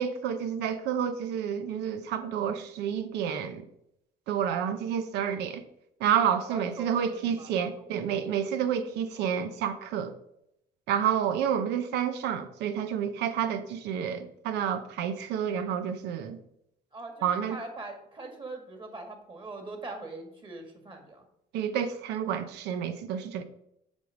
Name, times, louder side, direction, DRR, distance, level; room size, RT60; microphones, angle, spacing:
voice 1, 0.0-3.6 4.3-5.6 6.0-10.1 10.9-16.4 17.2-17.6 21.5-23.4, right 8 dB, 85° right, 10 dB, 0.9 m, -29 dB
voice 2, 6.5-8.0 16.9-21.3, right 3 dB, 30° right, 4 dB, 2.0 m, -42 dB
7.5 x 5.3 x 5.2 m, 0.79 s
cardioid pair, 110°, 17 cm